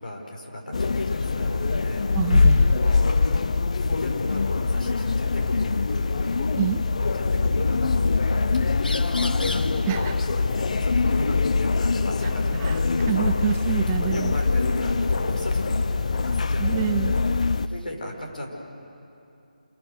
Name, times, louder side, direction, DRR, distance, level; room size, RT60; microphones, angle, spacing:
voice 1, 0.0-2.0 2.8-3.2 3.9-6.3 7.0-8.5 8.8-13.7 14.0-17.1 17.7-18.5, left 1 dB, 70° left, 1 dB, 5.2 m, -36 dB
sound 1, 0.7-17.7, left 4 dB, 50° left, 0.6 m, -23 dB
voice 2, 2.1-2.8 6.6-6.9 9.9-10.1 12.6-14.3 16.6-17.2, right 11 dB, 15° right, 10 dB, 0.4 m, -27 dB
sound 2, 8.8-17.9, left 2 dB, 85° left, 1.2 m, -43 dB
27.5 x 20.0 x 6.6 m, 2.7 s
figure-of-eight pair, 160°, 5 cm